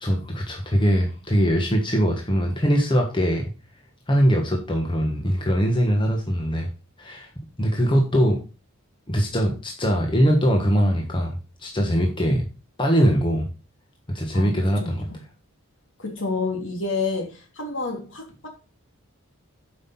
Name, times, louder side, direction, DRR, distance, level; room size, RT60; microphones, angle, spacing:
voice 1, 0.0-3.4 4.1-6.7 7.0-7.3 7.6-8.4 9.1-12.5 12.8-13.5 14.1-15.0, equal, 20° left, 1.4 m, -21 dB
voice 2, 14.3-14.9 16.0-18.5, left 3 dB, 60° left, 3.0 m, -29 dB
8.5 x 5.6 x 5.7 m
head